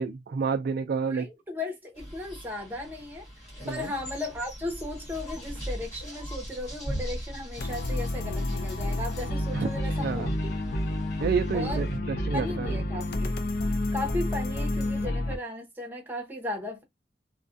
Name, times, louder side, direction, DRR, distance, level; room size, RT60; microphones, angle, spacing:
voice 1, 0.0-1.3 3.6-3.9 9.5-10.4 11.2-12.8, right 5 dB, 60° right, 0.3 m, -30 dB
voice 2, 1.0-3.3 3.7-10.5 11.5-11.8 12.3-13.3 13.9-16.8, left 2 dB, 10° right, 0.8 m, -36 dB
sound 1, 2.0-12.0, equal, 40° left, 1.2 m, -40 dB
sound 2, 7.6-15.4, left 1 dB, 60° left, 0.5 m, -30 dB
2.4 x 2.2 x 2.5 m
head